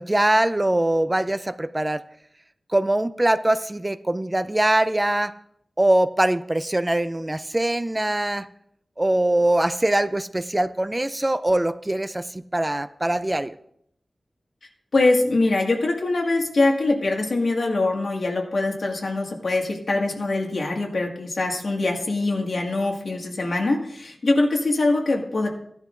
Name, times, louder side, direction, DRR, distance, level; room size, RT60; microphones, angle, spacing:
voice 1, 0.0-2.0 2.7-5.3 5.8-8.5 9.0-13.5, right 1 dB, 20° right, 12 dB, 0.5 m, -22 dB
voice 2, 14.9-25.5, left 2 dB, 85° left, 0 dB, 1.9 m, -23 dB
16.0 x 11.0 x 2.6 m, 0.71 s
wide cardioid pair, 90°, 0 cm